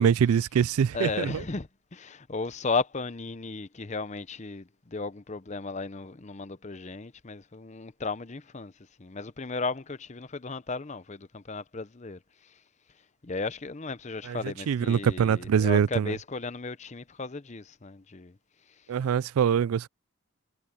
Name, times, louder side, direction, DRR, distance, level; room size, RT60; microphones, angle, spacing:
voice 1, 0.0-1.4 14.3-14.4 14.7-16.1 18.9-19.9, right 7 dB, 90° right, 0.3 m, -24 dB
voice 2, 0.9-8.7 9.0-12.2 13.2-18.4, left 4 dB, 35° left, 0.7 m, -35 dB
head